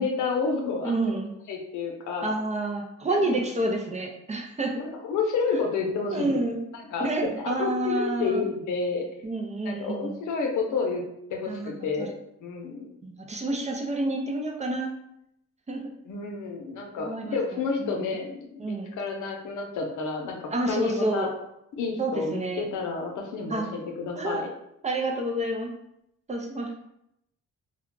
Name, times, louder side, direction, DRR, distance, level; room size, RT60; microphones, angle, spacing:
voice 1, 0.0-0.9 1.5-2.3 3.0-3.4 4.6-6.4 6.7-7.1 7.3-9.0 9.6-11.0 11.3-12.1 12.4-12.9 16.1-20.4 20.7-21.3 21.7-24.5, left 4 dB, 75° left, 1 dB, 0.7 m, -30 dB
voice 2, 0.8-1.3 2.2-4.8 6.1-6.6 7.0-8.5 9.2-10.2 11.5-12.1 13.0-14.9 15.7-15.8 17.1-17.4 17.8-18.2 18.6-19.0 20.5-21.3 22.0-22.7 23.5-23.9 24.2-24.5 24.8-25.7 26.3-26.7, right 2 dB, 25° right, 1 dB, 0.5 m, -29 dB
2.3 x 2.1 x 3.7 m, 0.80 s
cardioid pair, 90°, 30 cm